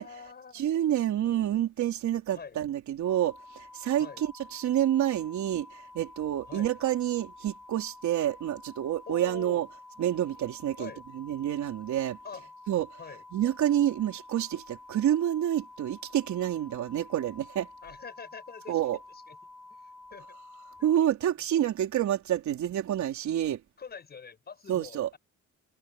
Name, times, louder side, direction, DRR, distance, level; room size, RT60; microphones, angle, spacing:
voice 1, 0.0-0.6 2.3-2.6 4.0-4.2 6.5-6.7 9.1-9.7 10.8-11.0 12.2-12.5 13.0-13.2 17.8-18.8 19.1-19.4 19.8-20.3 20.8-20.9 23.8-25.2, left 6 dB, 35° left, 7.6 m, -45 dB
voice 2, 0.5-9.7 10.0-10.9 11.1-12.2 12.7-12.9 13.3-17.7 18.7-19.0 20.8-23.6 24.7-25.1, right 11 dB, 70° right, 4.0 m, -28 dB
sound 1, 3.0-21.0, left 2 dB, 85° left, 2.9 m, -50 dB
cardioid pair, 170°, 30 cm